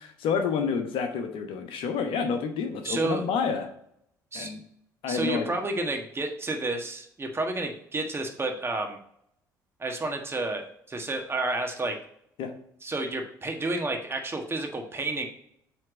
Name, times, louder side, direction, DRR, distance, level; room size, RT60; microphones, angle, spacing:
voice 1, 0.0-3.7 4.3-4.6 5.0-5.5 12.4-12.5, left 6 dB, 60° left, 6 dB, 1.0 m, -29 dB
voice 2, 2.8-3.3 4.3-4.5 5.1-9.0 9.8-12.0 12.8-15.3, right 2 dB, 25° right, 3 dB, 1.4 m, -30 dB
7.7 x 3.6 x 5.0 m, 0.70 s
hypercardioid pair, 55°, 10 cm